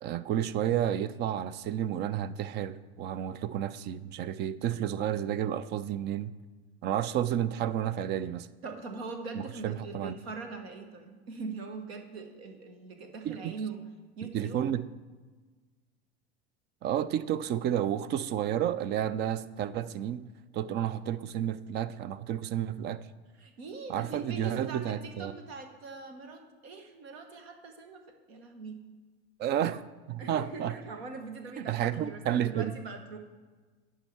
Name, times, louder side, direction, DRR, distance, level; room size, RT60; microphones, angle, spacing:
voice 1, 0.0-6.3 6.8-8.5 9.6-10.2 13.2-13.5 14.3-14.9 16.8-20.3 20.5-23.0 23.9-25.3 29.4-30.8 31.6-32.7, right 10 dB, 35° right, 16 dB, 0.4 m, -31 dB
voice 2, 8.6-13.8 14.2-14.7 23.4-28.0 28.3-28.8 30.2-33.2, right 4 dB, 70° right, 5 dB, 1.4 m, -42 dB
10.5 x 5.6 x 4.6 m, 1.4 s
hypercardioid pair, 80°, 33 cm